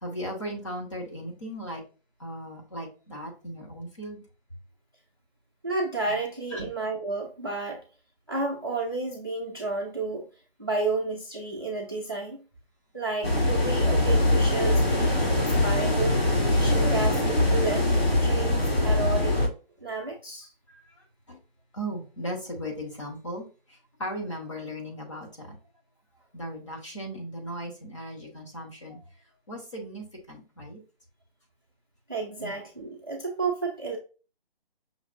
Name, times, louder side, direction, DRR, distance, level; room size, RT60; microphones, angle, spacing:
voice 1, 0.0-1.8 2.2-4.2 6.5-6.7 20.7-20.8 21.3-21.4 21.7-23.4 24.0-25.6 26.3-29.0 29.5-30.8 32.4-32.6, equal, 30° left, -1 dB, 1.1 m, -37 dB
voice 2, 5.6-7.8 8.3-10.3 10.6-12.4 12.9-17.9 18.2-19.4 19.8-20.5 32.1-34.0, right 3 dB, 25° right, 0 dB, 0.5 m, -31 dB
sound 1, 13.2-19.5, left 1 dB, 80° left, 2.3 m, -23 dB
5.7 x 2.6 x 2.5 m, 0.35 s
hypercardioid pair, 180°, 30 cm